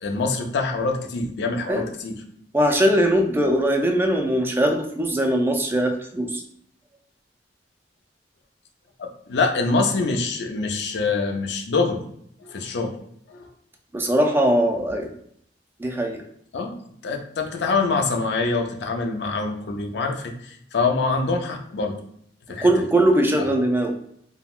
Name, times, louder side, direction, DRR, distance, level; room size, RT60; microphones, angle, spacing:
voice 1, 0.0-2.2 9.0-12.0 12.4-12.9 13.3-13.5 16.5-16.8 17.0-22.0 22.5-22.9 23.4-23.5, left 3 dB, 65° left, 3 dB, 0.5 m, -25 dB
voice 2, 2.5-6.4 13.9-15.1 15.8-16.2 22.6-23.9, right 1 dB, 10° right, 3 dB, 0.3 m, -20 dB
3.5 x 2.1 x 2.4 m, 0.69 s
head